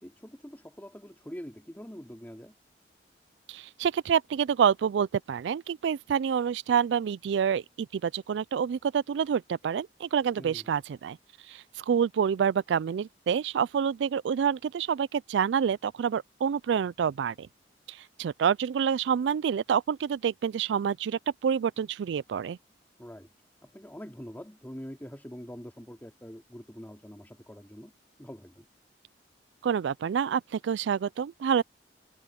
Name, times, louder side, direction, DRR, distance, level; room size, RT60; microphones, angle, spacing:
voice 1, 0.0-2.5 10.3-10.7 23.0-23.3 23.6-27.9 28.2-28.7, equal, 10° left, 3.1 m, -44 dB
voice 2, 3.5-11.2 11.5-17.5 17.9-22.6 29.6-31.6, right 7 dB, 80° right, 0.3 m, -27 dB
head